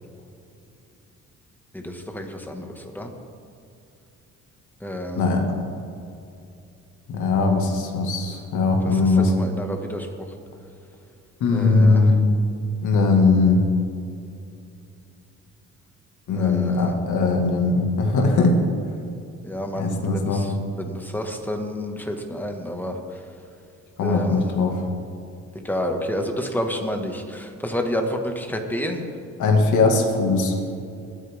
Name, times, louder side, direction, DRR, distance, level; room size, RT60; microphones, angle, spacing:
voice 1, 1.7-3.1 4.8-5.4 8.8-10.1 11.5-12.0 16.3-16.9 19.4-20.5 20.8-23.0 24.0-24.5 25.6-29.0, left 1 dB, 5° left, 3 dB, 1.8 m, -29 dB
voice 2, 5.2-5.5 7.1-9.3 11.4-12.2 12.8-13.6 16.3-18.6 19.8-20.4 24.0-24.8 29.4-30.5, left 3 dB, 75° left, 2 dB, 2.0 m, -20 dB
21.5 x 9.3 x 3.6 m, 2.6 s
cardioid pair, 90°, 30 cm